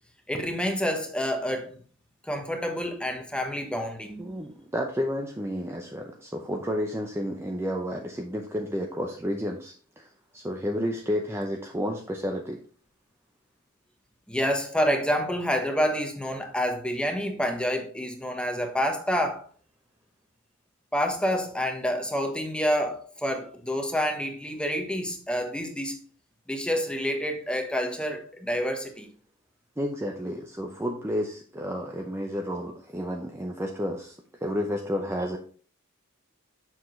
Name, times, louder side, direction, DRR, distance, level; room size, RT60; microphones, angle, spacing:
voice 1, 0.3-1.8 2.3-4.3 14.3-19.4 20.9-26.0 26.5-29.1, equal, 5° left, 1.1 m, -28 dB
voice 2, 4.2-10.1 10.3-12.6 29.8-35.4, equal, 10° right, 0.6 m, -31 dB
7.1 x 6.1 x 3.1 m
head